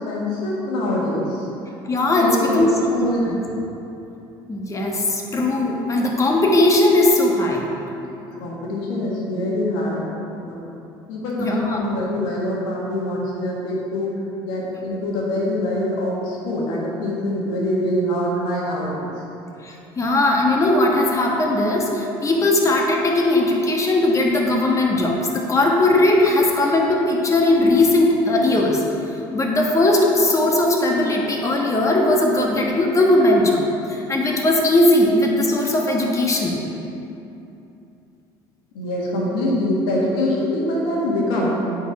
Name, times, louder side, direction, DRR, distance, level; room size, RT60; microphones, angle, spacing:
voice 1, 0.0-1.5 2.2-3.5 8.2-10.7 11.1-14.1 14.4-19.1 38.7-41.6, left 1 dB, 80° left, -4 dB, 1.8 m, -24 dB
voice 2, 1.8-2.9 3.2-3.4 4.5-7.7 11.4-11.9 19.6-28.8 29.3-36.6, left 1 dB, 25° left, -1 dB, 1.4 m, -18 dB
9.0 x 4.7 x 4.7 m, 2.8 s
supercardioid pair, 80°, 12 cm